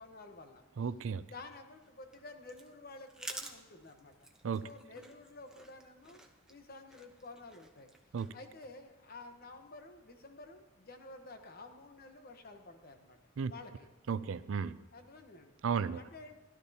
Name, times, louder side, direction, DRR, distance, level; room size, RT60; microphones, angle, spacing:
voice 1, 0.0-0.6 1.2-4.3 4.6-6.2 6.5-7.9 8.3-13.2 13.5-13.9 14.9-15.6 15.9-16.4, left 2 dB, 50° left, 6 dB, 1.1 m, -51 dB
voice 2, 0.8-1.3 4.4-4.7 8.1-8.3 13.4-13.5 14.1-14.8 15.6-16.0, right 6 dB, 75° right, 15 dB, 0.4 m, -34 dB
sound 1, 1.8-8.7, right 2 dB, 5° right, 0.8 m, -51 dB
16.0 x 11.5 x 2.8 m, 1.2 s
head